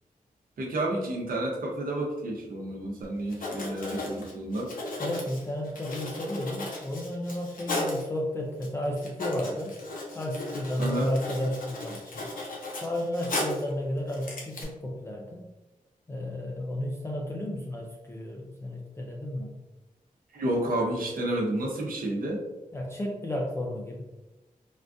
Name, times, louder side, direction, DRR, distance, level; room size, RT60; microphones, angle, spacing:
voice 1, 0.6-4.7 10.8-11.1 20.3-22.4, right 1 dB, 80° right, -2 dB, 0.8 m, -30 dB
Writing, 3.3-8.1 8.6-8.7 9.0-13.7 14.1-14.6, left 2 dB, 75° left, 0.8 m, -36 dB
voice 2, 5.0-9.8 10.1-12.3 12.8-15.5 16.1-19.6 22.7-24.0, left 1 dB, 20° left, -1 dB, 0.3 m, -33 dB
3.7 x 2.3 x 2.5 m, 1.1 s
wide cardioid pair, 145°, 15 cm